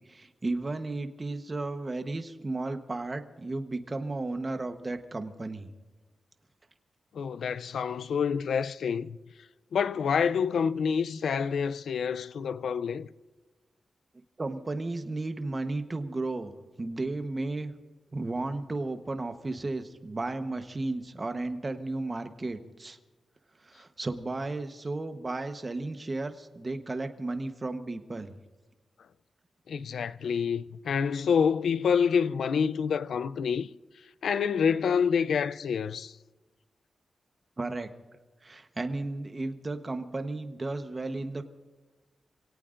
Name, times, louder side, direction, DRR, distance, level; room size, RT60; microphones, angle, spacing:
voice 1, 0.1-5.7 14.4-16.5 16.8-17.7 18.1-23.0 23.6-28.3 37.6-37.9 38.4-41.4, right 2 dB, 30° right, 1.1 m, -34 dB
voice 2, 7.1-9.2 9.7-13.1 29.7-33.7 34.2-36.1, left 6 dB, 85° left, 0.4 m, -27 dB
27.0 x 18.0 x 2.6 m
wide cardioid pair, 120°, 0 cm